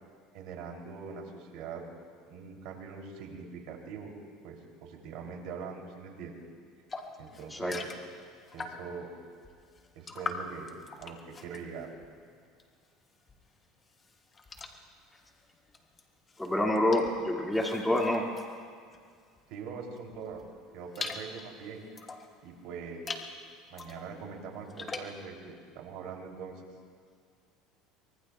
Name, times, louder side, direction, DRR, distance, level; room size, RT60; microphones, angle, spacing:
voice 1, 0.3-1.8 2.3-4.1 4.4-6.3 7.2-7.9 8.5-9.1 9.9-10.7 11.0-11.9 19.5-20.4 20.7-21.8 22.4-23.2 23.7-26.6, right 5 dB, 70° right, 0 dB, 3.2 m, -42 dB
sound 1, 6.9-9.0 9.4-12.9 13.2-19.5 20.0-22.4 22.9-23.3 23.7-25.2, left 4 dB, 25° left, 1.3 m, -43 dB
voice 2, 16.4-18.2, left 1 dB, 5° left, -1 dB, 2.3 m, -27 dB
24.5 x 23.0 x 2.4 m, 2.1 s
supercardioid pair, 115°, 0 cm